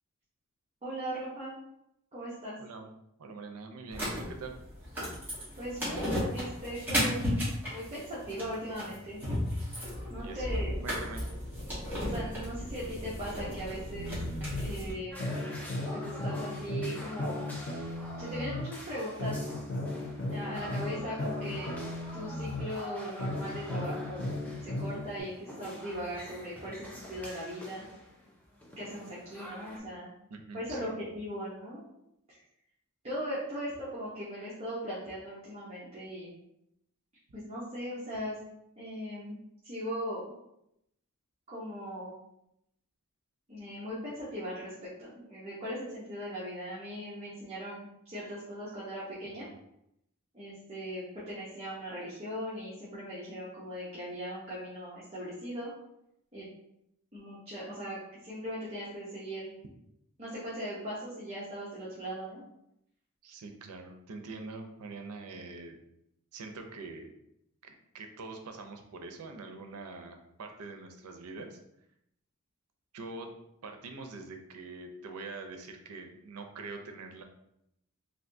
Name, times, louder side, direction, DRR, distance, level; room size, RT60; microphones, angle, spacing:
voice 1, 0.8-1.6 2.1-2.6 5.6-7.3 7.7-9.2 10.1-10.7 12.1-14.1 14.6-15.4 15.9-17.5 18.2-19.6 20.3-21.7 22.1-24.3 24.6-27.8 28.8-30.1 30.5-31.9 32.3-32.4 33.0-36.3 37.3-38.4 38.8-39.4 39.6-40.2 41.5-42.1 43.5-49.5 50.3-55.7 56.3-56.5 57.1-59.5 60.2-62.4, equal, 25° right, -9 dB, 0.8 m, -39 dB
voice 2, 2.6-2.9 3.2-4.6 10.2-10.6 10.8-11.3 20.5-20.6 30.3-31.1 49.3-49.5 63.2-65.8 66.3-67.1 67.6-71.6 72.9-73.3 73.6-77.2, right 3 dB, 90° right, 5 dB, 0.5 m, -44 dB
sound 1, 3.9-14.9, equal, 10° right, 1.0 m, -34 dB
sound 2, 13.9-14.7 15.2-18.7 19.2-22.7 23.2-25.2, left 2 dB, 85° left, 1.0 m, -35 dB
sound 3, 15.1-29.8, equal, 5° left, 0.4 m, -46 dB
3.3 x 2.6 x 2.6 m, 0.79 s
head